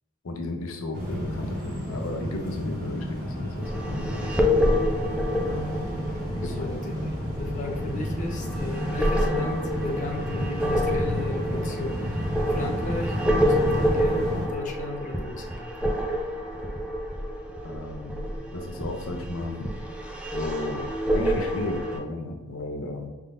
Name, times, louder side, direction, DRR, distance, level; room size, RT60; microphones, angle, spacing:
voice 1, 0.2-4.5 5.4-6.0 6.3-6.8 17.6-19.7 20.3-23.1, left 2 dB, 75° left, 3 dB, 0.6 m, -34 dB
sound 1, 0.9-14.5, equal, 40° right, 1.4 m, -31 dB
sound 2, 3.6-22.0, equal, 5° right, 0.5 m, -28 dB
voice 2, 6.2-12.1 12.5-15.7, left 2 dB, 40° left, 0 dB, 0.6 m, -36 dB
5.5 x 3.6 x 2.5 m, 1.2 s
head